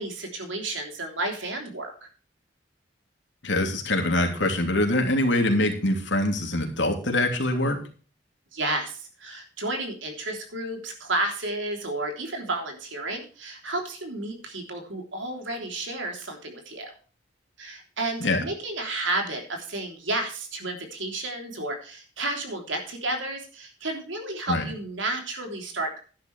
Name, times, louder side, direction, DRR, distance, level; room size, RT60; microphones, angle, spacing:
voice 1, 0.0-1.9 8.5-16.9 17.6-26.0, right 2 dB, 85° right, 3 dB, 3.4 m, -32 dB
voice 2, 3.4-7.8 18.2-18.4 24.5-24.6, left 1 dB, 75° left, 3 dB, 2.9 m, -24 dB
12.0 x 10.5 x 3.3 m, 0.38 s
head